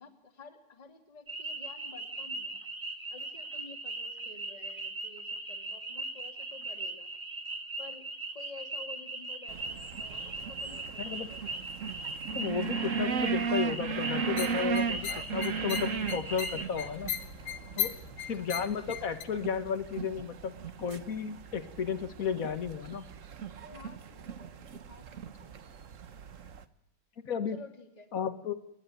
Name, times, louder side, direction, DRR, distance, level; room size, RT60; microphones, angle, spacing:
voice 1, 0.0-2.6 3.1-7.1 7.8-8.0 8.3-11.5 17.8-18.2 23.7-25.6 27.5-28.1, left 4 dB, 20° left, 4 dB, 2.3 m, -51 dB
sound 1, 1.3-16.6, right 2 dB, 20° right, 1.5 m, -39 dB
sound 2, 9.5-26.6, right 6 dB, 50° right, 1.1 m, -37 dB
voice 2, 11.0-11.3 12.3-17.1 17.8-17.9 18.3-23.0 27.2-27.6 28.1-28.5, left 6 dB, 45° left, 10 dB, 1.7 m, -33 dB
sound 3, 14.3-19.2, left 10 dB, 70° left, 1.8 m, -38 dB
30.0 x 11.0 x 9.1 m, 0.78 s
omnidirectional pair, 2.4 m